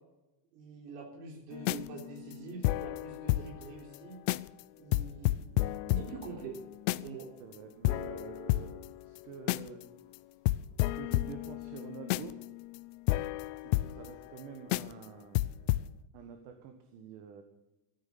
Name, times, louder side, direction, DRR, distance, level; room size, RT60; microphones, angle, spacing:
voice 1, 0.5-4.2 4.8-5.4 5.9-6.6 7.0-7.3, right 4 dB, 80° right, -1 dB, 3.8 m, -45 dB
sound 1, 1.5-3.7 3.9-4.0 4.3-4.6 4.9-7.2 7.5-7.6 7.8-9.8 10.1-10.2 10.5-14.4 14.7-15.0 15.3-15.9, left 17 dB, 55° left, 0.5 m, -32 dB
voice 2, 7.4-9.9 10.8-12.4 13.6-15.5 16.1-17.4, right 7 dB, 50° right, 7 dB, 1.6 m, -48 dB
14.5 x 9.4 x 8.4 m, 1.0 s
cardioid pair, 180°, 48 cm